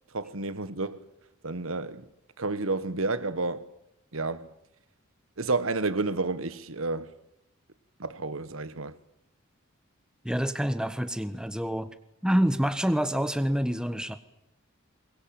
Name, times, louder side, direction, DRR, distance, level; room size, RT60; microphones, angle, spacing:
voice 1, 0.1-1.0 1.4-2.1 2.4-3.7 4.1-4.5 5.4-7.1 8.0-9.0, right 3 dB, 80° right, 1.5 m, -30 dB
voice 2, 10.2-11.9 12.2-14.2, equal, 5° right, 1.3 m, -27 dB
23.0 x 22.5 x 9.0 m
head